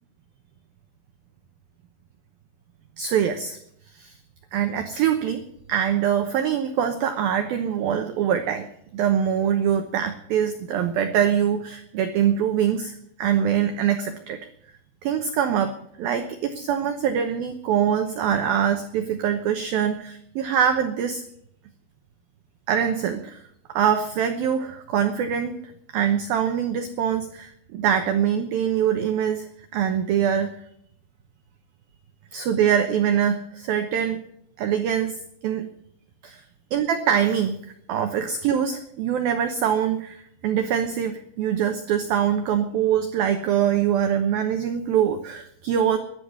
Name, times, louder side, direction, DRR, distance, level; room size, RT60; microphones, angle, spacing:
voice 1, 3.0-3.6 3.9-4.1 4.5-5.4 5.7-8.7 8.9-14.4 15.0-21.2 22.7-23.4 23.7-25.6 25.9-29.5 29.7-30.5 32.3-34.2 34.6-35.2 35.4-35.7 36.2-36.4 36.7-37.6 37.9-46.0, right 8 dB, 85° right, 6 dB, 2.1 m, -23 dB
11.5 x 11.5 x 9.5 m, 0.71 s
omnidirectional pair, 5.8 m